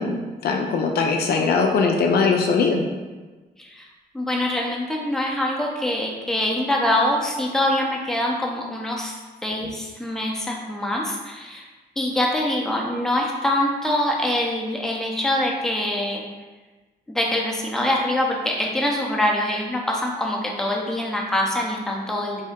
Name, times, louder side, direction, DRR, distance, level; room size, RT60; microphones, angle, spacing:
voice 1, 0.0-2.9, left 4 dB, 70° left, 2 dB, 0.4 m, -21 dB
voice 2, 4.1-9.2 9.4-11.7 12.0-16.2 17.1-22.4, left 1 dB, 5° left, -2 dB, 0.6 m, -24 dB
2.7 x 2.1 x 3.5 m, 1.2 s
cardioid pair, 70°, 17 cm